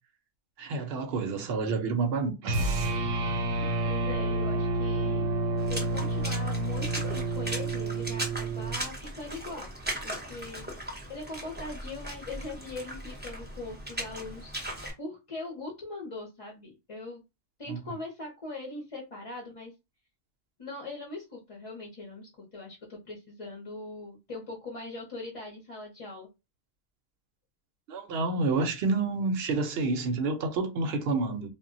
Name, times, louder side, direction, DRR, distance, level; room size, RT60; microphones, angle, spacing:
voice 1, 0.6-2.7 17.7-17.8 27.9-31.5, right 3 dB, 60° right, 0.7 m, -29 dB
sound 1, 2.4-8.8, right 2 dB, 85° right, 1.0 m, -29 dB
voice 2, 3.6-5.3 5.7-9.7 10.0-10.7 11.1-14.5 15.0-17.2 17.6-19.7 20.6-26.3, left 2 dB, 35° left, 0.5 m, -41 dB
Water / Splash splatter, 5.6-14.9, right 1 dB, 10° right, 0.5 m, -38 dB
2.1 x 2.1 x 3.7 m
omnidirectional pair, 1.3 m